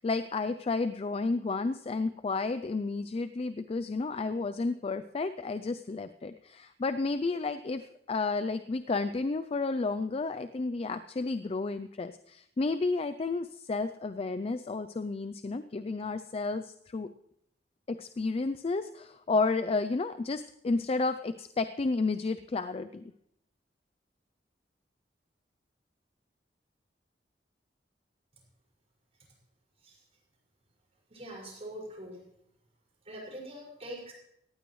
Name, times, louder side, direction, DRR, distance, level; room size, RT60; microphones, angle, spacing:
voice 1, 0.0-17.1 17.9-23.1, left 3 dB, 35° left, 11 dB, 0.4 m, -31 dB
voice 2, 31.1-32.2 33.0-34.1, right 1 dB, 35° right, -4 dB, 5.6 m, -43 dB
18.5 x 15.5 x 3.2 m, 0.75 s
head